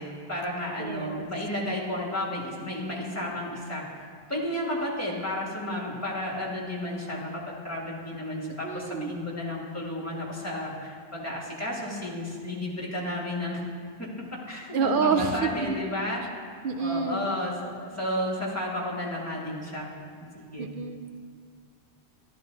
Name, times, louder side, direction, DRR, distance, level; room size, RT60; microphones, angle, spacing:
voice 1, 0.0-3.8 4.3-13.6 14.0-14.1 14.5-16.4 16.8-19.9 20.3-20.7, left 1 dB, 15° left, -3 dB, 1.8 m, -32 dB
voice 2, 0.8-1.3 1.6-1.7 8.4-9.1 14.7-15.8 16.6-17.3 20.6-21.2, right 5 dB, 60° right, 7 dB, 0.7 m, -28 dB
11.5 x 11.5 x 4.0 m, 2.1 s
omnidirectional pair, 1.1 m